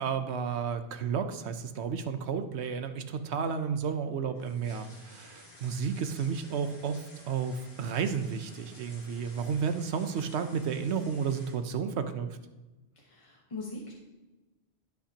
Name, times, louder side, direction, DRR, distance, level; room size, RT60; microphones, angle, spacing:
voice 1, 0.0-12.3, right 6 dB, 80° right, 9 dB, 1.0 m, -32 dB
sound 1, 3.9-11.5, left 1 dB, 60° left, 2.6 m, -53 dB
voice 2, 12.9-13.9, left 3 dB, 30° left, -3 dB, 1.3 m, -41 dB
17.5 x 5.8 x 2.9 m, 1.1 s
omnidirectional pair, 1.1 m